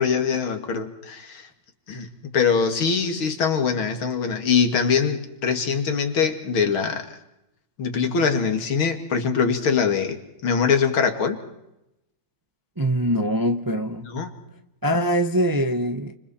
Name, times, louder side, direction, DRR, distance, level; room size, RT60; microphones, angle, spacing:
voice 1, 0.0-1.5 1.9-7.2 7.8-10.2 10.4-11.4 14.0-14.3, left 6 dB, 80° left, 3.0 m, -23 dB
voice 2, 12.8-14.1 14.8-16.1, equal, 15° right, 0.7 m, -23 dB
30.0 x 27.5 x 4.4 m
omnidirectional pair, 2.2 m